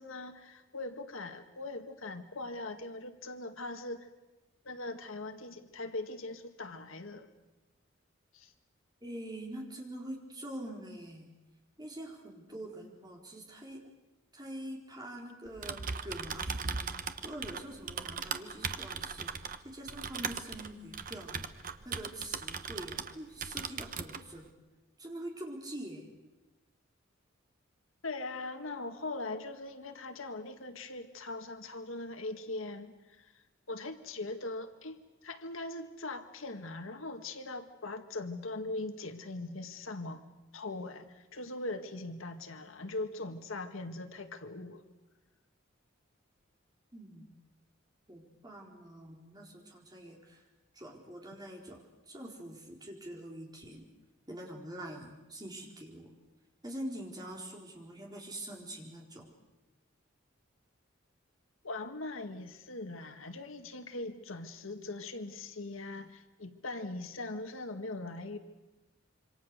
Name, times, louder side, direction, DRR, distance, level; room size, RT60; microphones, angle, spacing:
voice 1, 0.0-4.1 4.6-7.3 8.3-8.5 28.0-40.2 40.5-44.8 61.6-68.4, left 2 dB, 85° left, 7 dB, 1.8 m, -41 dB
voice 2, 9.0-11.3 11.8-13.8 14.3-21.5 21.8-24.5 25.0-26.1 46.9-47.3 48.1-50.4 50.7-53.9 54.3-56.1 56.6-59.3, right 1 dB, 20° right, 0 dB, 4.3 m, -45 dB
Typing, 15.5-23.1 23.4-24.2, right 5 dB, 45° right, 1.1 m, -38 dB
26.5 x 25.5 x 6.7 m, 1.1 s
head